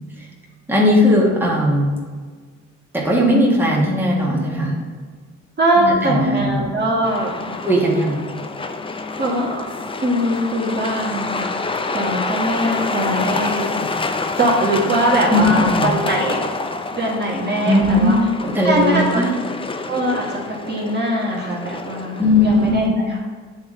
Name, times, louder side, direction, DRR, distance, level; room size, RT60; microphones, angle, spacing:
voice 1, 0.7-1.9 2.9-4.8 5.8-6.6 7.6-8.2 15.3-15.9 17.6-18.1 18.4-19.3 22.2-23.0, left 1 dB, 5° right, -5 dB, 1.6 m, -17 dB
voice 2, 5.6-7.6 9.2-9.6 10.0-11.6 11.9-13.7 14.4-16.5 16.9-18.1 18.6-19.2 19.9-23.2, right 1 dB, 35° right, -4 dB, 1.5 m, -21 dB
Truck, 7.0-22.9, left 3 dB, 20° left, 0.4 m, -27 dB
9.0 x 3.6 x 3.7 m, 1.5 s
cardioid pair, 90°, 30 cm